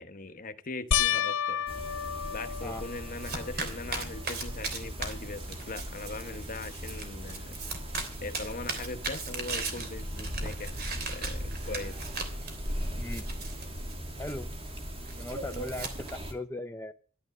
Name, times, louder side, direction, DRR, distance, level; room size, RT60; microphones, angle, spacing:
voice 1, 0.0-1.6 2.3-7.6 8.2-10.8 11.1-12.0, left 3 dB, 40° left, 1.1 m, -40 dB
sound 1, 0.9-3.5 4.1-4.7 5.0-5.1 8.3-8.4, left 9 dB, 65° left, 0.7 m, -31 dB
sound 2, 1.7-16.3, equal, 25° right, 2.3 m, -39 dB
Domestic sounds home sounds, 2.5-16.1, right 4 dB, 50° right, 3.2 m, -40 dB
voice 2, 14.2-14.6 15.2-16.9, left 2 dB, 10° left, 0.7 m, -38 dB
12.0 x 11.0 x 6.5 m
head